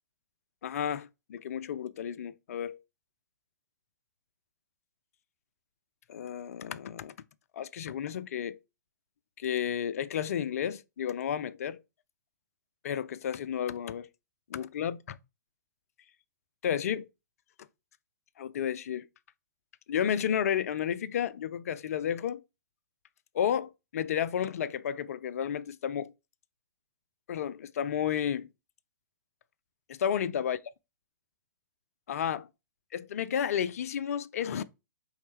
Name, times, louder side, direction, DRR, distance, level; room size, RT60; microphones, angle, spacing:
voice 1, 0.6-2.8 6.1-7.1 7.5-8.6 9.4-11.8 12.8-14.1 14.5-15.2 16.6-17.1 18.4-19.1 19.9-22.4 23.3-26.1 27.3-28.5 29.9-30.6 32.1-32.5 32.9-34.6, left 9 dB, 50° left, 0.3 m, -32 dB
4.3 x 3.2 x 3.2 m
figure-of-eight pair, 115°, 10 cm